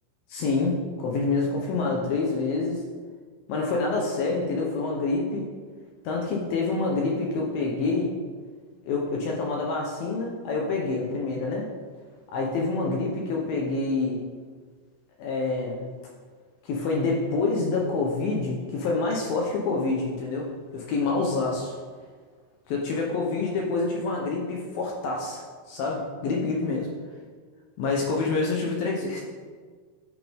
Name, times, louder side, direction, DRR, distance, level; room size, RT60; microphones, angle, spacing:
voice 1, 0.3-2.8 3.5-5.5 6.0-8.1 8.8-11.7 12.3-14.2 15.2-15.9 16.6-21.8 22.7-25.4 25.7-26.9 27.8-29.2, left 3 dB, 70° left, -1 dB, 2.4 m, -27 dB
11.0 x 9.1 x 3.6 m, 1.5 s
omnidirectional pair, 5.1 m